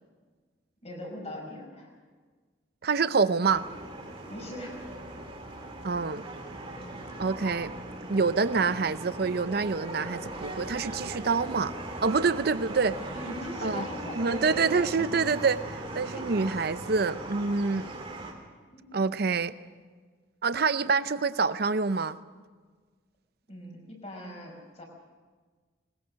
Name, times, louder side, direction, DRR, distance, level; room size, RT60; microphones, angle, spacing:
voice 1, 0.8-1.9 4.3-4.8 6.8-7.1 13.1-15.2 16.1-16.3 18.7-18.9 23.5-24.8, left 1 dB, 35° left, 1 dB, 5.2 m, -40 dB
voice 2, 2.8-3.6 5.8-6.2 7.2-7.7 8.1-11.7 12.0-13.0 13.6-13.8 14.2-18.0 18.9-19.5 20.4-22.2, right 4 dB, 55° right, 13 dB, 0.6 m, -26 dB
sound 1, 3.5-18.3, right 1 dB, 30° right, 2.9 m, -39 dB
21.0 x 19.5 x 6.4 m, 1.4 s
head